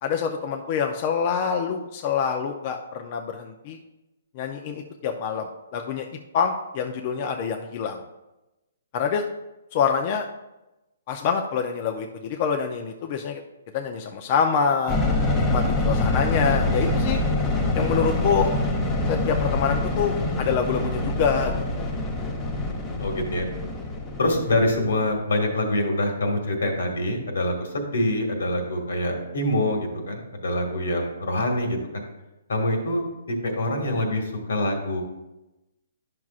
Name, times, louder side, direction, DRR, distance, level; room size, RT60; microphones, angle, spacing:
voice 1, 0.0-3.8 4.4-5.5 5.7-6.0 6.3-8.0 8.9-9.2 9.7-10.3 11.1-13.4 13.7-15.0 15.5-17.2 17.7-18.5 19.1-21.5, left 6 dB, 35° left, 4 dB, 0.5 m, -26 dB
sound 1, 14.9-25.1, left 2 dB, 15° left, 0.8 m, -25 dB
voice 2, 23.0-23.4 24.2-32.0 32.5-33.0 33.4-35.0, left 1 dB, 80° left, 3 dB, 1.7 m, -25 dB
10.5 x 6.0 x 2.4 m, 0.99 s
hypercardioid pair, 155°, 0 cm